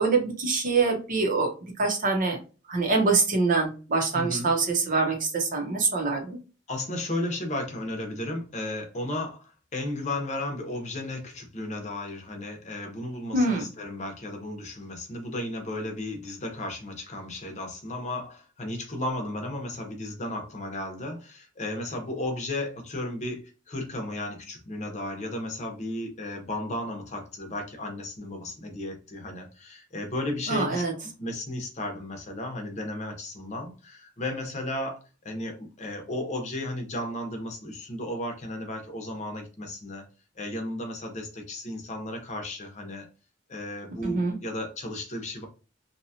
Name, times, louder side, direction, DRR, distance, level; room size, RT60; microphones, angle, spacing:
voice 1, 0.0-1.5 1.8-2.4 2.7-6.4 13.3-13.7 30.5-30.9 44.0-44.3, right 3 dB, 45° right, 2 dB, 0.8 m, -24 dB
voice 2, 4.1-4.5 6.7-9.4 9.7-30.8 31.2-40.0 40.4-43.1 43.5-45.5, left 1 dB, 35° left, 2 dB, 0.8 m, -34 dB
2.8 x 2.3 x 2.8 m, 0.33 s
head